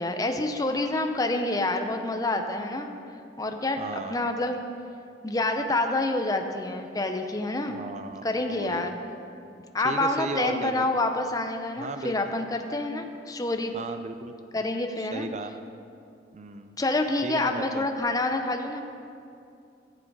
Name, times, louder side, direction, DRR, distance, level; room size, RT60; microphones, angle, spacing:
voice 1, 0.0-2.9 3.4-4.6 5.2-7.8 8.2-9.0 9.7-13.7 14.5-15.3 16.8-18.8, left 2 dB, 20° left, 5 dB, 0.6 m, -27 dB
voice 2, 3.8-4.2 7.7-9.0 9.8-10.9 11.8-12.3 13.7-14.4 15.0-15.5 16.3-16.8 17.2-17.8, right 3 dB, 40° right, 8 dB, 0.5 m, -36 dB
15.0 x 7.6 x 4.8 m, 2.5 s
head